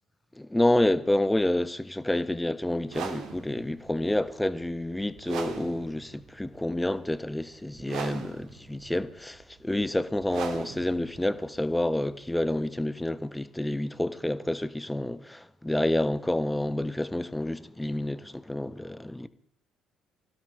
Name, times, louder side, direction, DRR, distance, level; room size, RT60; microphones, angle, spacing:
voice 1, 0.4-19.3, left 1 dB, 10° left, 1.2 m, -28 dB
sound 1, 2.8-12.7, right 7 dB, 55° right, 2.2 m, -40 dB
25.0 x 16.5 x 3.2 m
figure-of-eight pair, 50°, 0 cm